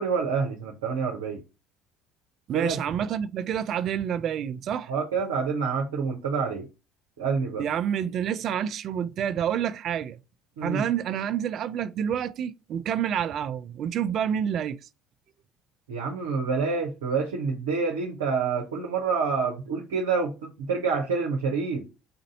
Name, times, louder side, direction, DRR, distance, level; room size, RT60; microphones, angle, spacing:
voice 1, 0.0-1.4 2.5-2.8 4.9-6.7 7.2-7.6 10.6-10.9 15.9-21.9, right 5 dB, 75° right, 0.8 m, -27 dB
voice 2, 2.5-4.9 7.6-10.2 10.6-14.8, right 9 dB, 50° right, 0.4 m, -28 dB
4.2 x 2.6 x 3.9 m
figure-of-eight pair, 60°, 0 cm